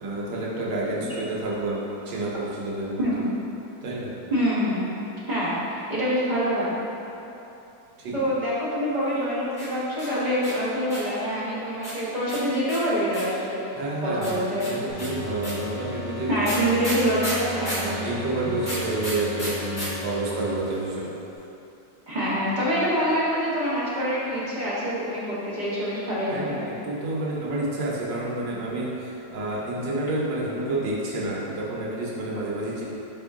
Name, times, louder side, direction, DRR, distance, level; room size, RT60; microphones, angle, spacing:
voice 1, 0.0-3.0 3.8-4.1 8.0-8.2 13.7-16.5 17.7-21.1 26.3-32.8, right 2 dB, 90° right, -5 dB, 1.5 m, -29 dB
voice 2, 3.0-3.3 4.3-4.9 5.3-6.8 8.1-13.6 14.0-14.7 16.3-17.9 22.1-26.6, equal, 35° right, -9 dB, 0.8 m, -25 dB
sound 1, 9.5-11.2 11.8-13.4 14.2-17.9 18.6-19.9 20.1-20.2 20.4-20.9, equal, 25° left, 1.1 m, -34 dB
sound 2, 14.9-21.0, left 1 dB, 60° left, 0.7 m, -36 dB
4.3 x 3.3 x 3.5 m, 3.0 s
omnidirectional pair, 1.9 m